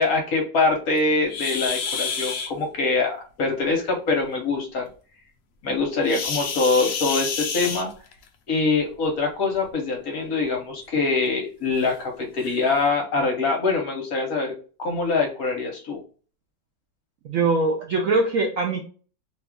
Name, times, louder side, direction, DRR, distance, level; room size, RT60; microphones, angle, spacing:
voice 1, 0.0-4.9 5.6-7.9 8.5-14.5 14.8-16.0, left 3 dB, 60° left, 1 dB, 1.1 m, -24 dB
sound 1, 1.3-2.5 6.0-8.3 9.5-9.7 10.3-10.4 10.9-11.0 11.8-11.9 12.4-12.6, left 5 dB, 75° left, 0.7 m, -29 dB
voice 2, 17.3-18.8, right 3 dB, 70° right, 1 dB, 0.7 m, -22 dB
3.0 x 2.3 x 3.4 m, 0.39 s
omnidirectional pair, 2.0 m